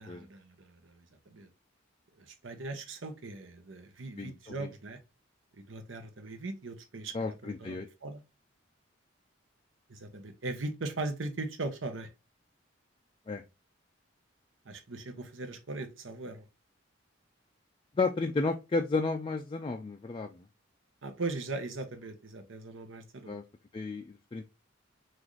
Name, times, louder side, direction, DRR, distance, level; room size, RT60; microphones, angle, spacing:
voice 1, 0.0-1.5 2.2-5.0 5.6-8.2 9.9-12.1 14.6-16.5 21.0-23.4, right 2 dB, 75° right, 0.9 m, -39 dB
voice 2, 4.2-4.7 7.1-7.9 13.3-13.4 18.0-20.4 23.3-23.4 23.7-24.4, left 3 dB, 25° left, 0.3 m, -32 dB
6.0 x 2.5 x 3.1 m
head